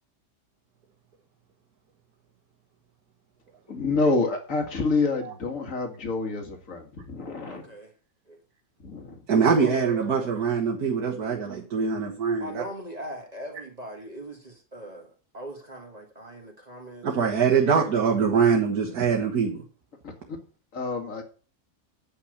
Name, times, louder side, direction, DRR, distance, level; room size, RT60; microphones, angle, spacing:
voice 1, 3.7-7.6 8.8-9.2 20.0-20.4 20.7-21.2, left 3 dB, 55° left, 4 dB, 2.3 m, -28 dB
voice 2, 7.4-7.9 8.3-8.4 9.3-10.3 12.4-17.9, right 1 dB, 25° right, 1 dB, 2.2 m, -41 dB
voice 3, 9.3-12.6 17.0-19.6, right 6 dB, 75° right, 1 dB, 1.9 m, -23 dB
9.6 x 5.8 x 6.6 m, 0.38 s
omnidirectional pair, 1.7 m